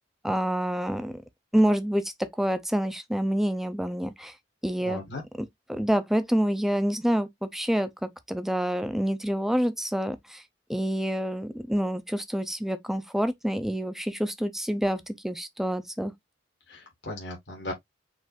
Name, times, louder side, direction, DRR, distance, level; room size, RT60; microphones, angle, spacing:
voice 1, 0.2-1.2 1.5-4.3 4.6-5.0 5.4-10.4 10.7-16.1, equal, ahead, 0.6 m, -27 dB
voice 2, 4.8-5.2 16.7-17.7, left 2 dB, 65° left, 2.1 m, -37 dB
5.1 x 4.0 x 2.6 m
head